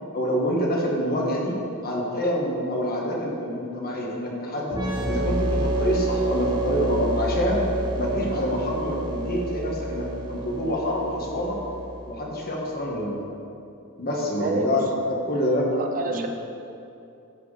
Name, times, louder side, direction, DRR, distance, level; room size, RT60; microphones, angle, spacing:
voice 1, 0.1-4.8 5.1-7.6 8.0-11.6 12.1-13.2 14.0-14.8 15.1-15.7 16.1-16.2, equal, 45° left, -2 dB, 1.5 m, -26 dB
sound 1, 4.7-12.2, right 2 dB, 20° right, 1.0 m, -28 dB
voice 2, 14.3-14.8 15.7-16.3, right 3 dB, 40° right, 4 dB, 0.6 m, -29 dB
13.0 x 4.7 x 5.0 m, 2.7 s
head